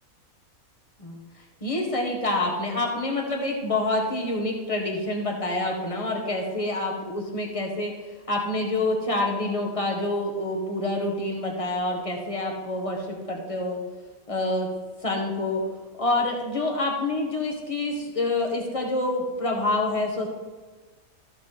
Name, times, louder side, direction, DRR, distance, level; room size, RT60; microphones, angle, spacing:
voice 1, 1.6-7.9 8.3-13.8 14.3-14.7 15.0-15.6 16.0-20.3, left 2 dB, 25° left, 0 dB, 1.6 m, -27 dB
13.5 x 6.5 x 3.9 m, 1.4 s
omnidirectional pair, 1.5 m